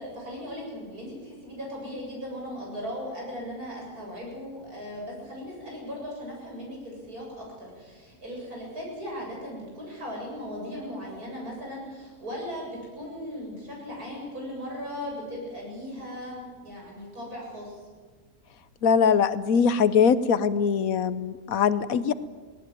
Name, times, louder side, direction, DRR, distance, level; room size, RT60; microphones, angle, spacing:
voice 1, 0.0-17.8, equal, 80° right, -2 dB, 8.4 m, -38 dB
voice 2, 18.8-22.1, left 6 dB, 70° left, 14 dB, 1.2 m, -22 dB
18.5 x 18.5 x 9.4 m, 1.4 s
omnidirectional pair, 1.6 m